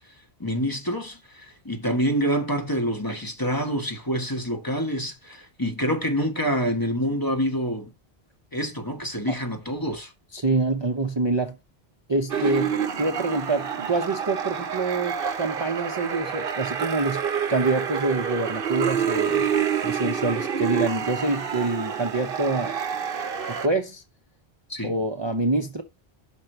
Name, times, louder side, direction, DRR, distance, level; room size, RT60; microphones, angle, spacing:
voice 1, 0.4-7.9 8.5-10.1 24.7-24.9, equal, 20° left, 1.2 m, -27 dB
voice 2, 10.3-11.6 12.1-17.2 17.5-19.5 19.8-22.8 23.5-24.0 24.8-25.8, right 3 dB, 30° right, 0.6 m, -26 dB
sound 1, 12.3-23.7, right 7 dB, 60° right, 1.0 m, -28 dB
5.9 x 4.5 x 6.5 m
omnidirectional pair, 1.1 m